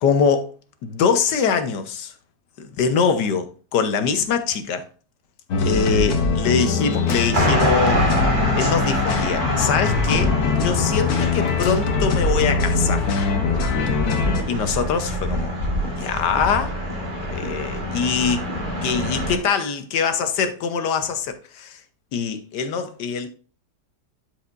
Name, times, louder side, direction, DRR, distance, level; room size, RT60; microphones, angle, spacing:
voice 1, 0.0-0.5 0.8-2.1 2.6-4.8 5.6-8.0 8.6-13.1 14.4-15.6 16.0-16.7 17.3-18.5 18.8-21.8 22.1-23.3, left 6 dB, 85° left, 1.6 m, -23 dB
sound 1, 5.5-14.4, left 4 dB, 65° left, 1.4 m, -22 dB
sound 2, 5.8-6.3 6.6-8.2 9.5-10.4 11.1-12.3, left 2 dB, 50° left, 1.6 m, -40 dB
sound 3, 7.3-19.4, equal, 30° right, 1.9 m, -26 dB
11.5 x 4.9 x 2.6 m
omnidirectional pair, 1.8 m